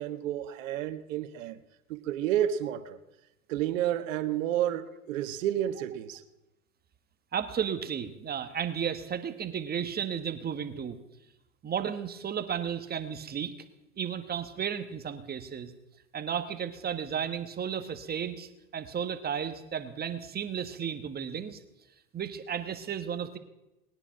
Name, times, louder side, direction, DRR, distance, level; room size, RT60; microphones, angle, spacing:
voice 1, 0.0-1.6 1.9-3.0 3.5-6.2, right 11 dB, 60° right, 1.4 m, -30 dB
voice 2, 7.3-11.0 11.6-13.5 14.0-15.7 16.1-21.6 22.1-23.4, right 8 dB, 20° right, 1.5 m, -33 dB
20.0 x 9.8 x 5.9 m
hypercardioid pair, 100°, 43 cm